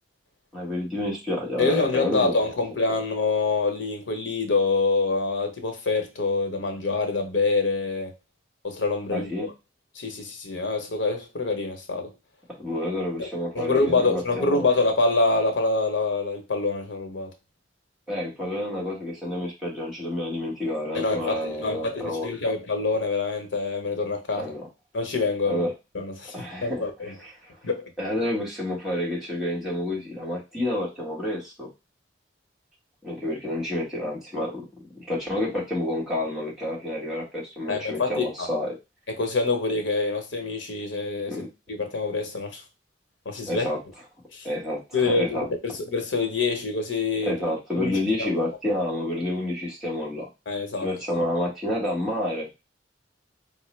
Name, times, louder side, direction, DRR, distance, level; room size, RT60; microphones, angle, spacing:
voice 1, 0.5-2.4 9.1-9.5 12.6-14.7 18.1-22.3 24.3-24.7 25.5-25.7 26.3-26.8 27.2-27.6 28.0-31.7 33.0-34.7 34.9-38.8 41.3-41.5 43.5-43.8 44.4-45.5 47.2-50.3 50.8-52.6, left 1 dB, ahead, 1.3 m, -29 dB
voice 2, 1.6-8.1 8.6-9.5 9.9-12.1 13.2-13.3 13.5-17.3 20.9-24.5 24.9-25.7 25.9-26.3 26.6-27.1 27.6-27.9 37.7-38.5 39.1-42.6 43.2-43.7 44.3-44.5 44.9-47.4 47.8-48.5 50.5-50.9 51.1-51.3, left 3 dB, 90° left, 0.9 m, -26 dB
4.4 x 2.0 x 3.2 m
head